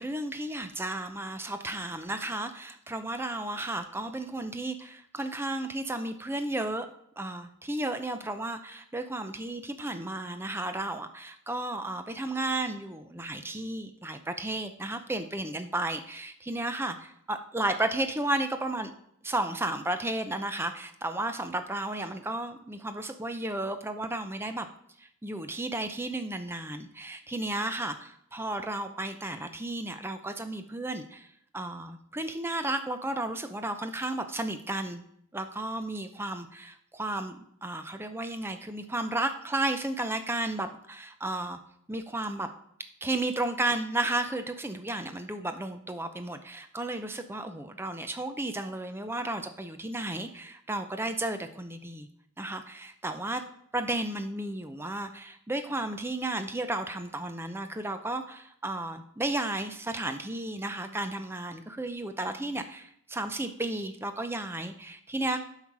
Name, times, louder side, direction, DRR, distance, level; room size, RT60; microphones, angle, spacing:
voice 1, 0.0-6.9 7.2-18.9 19.2-24.7 25.0-31.3 31.5-35.0 35.3-41.6 41.9-42.5 43.0-52.1 52.4-53.4 53.7-65.4, right 2 dB, 10° right, 8 dB, 0.6 m, -33 dB
8.5 x 5.7 x 4.7 m, 0.70 s
head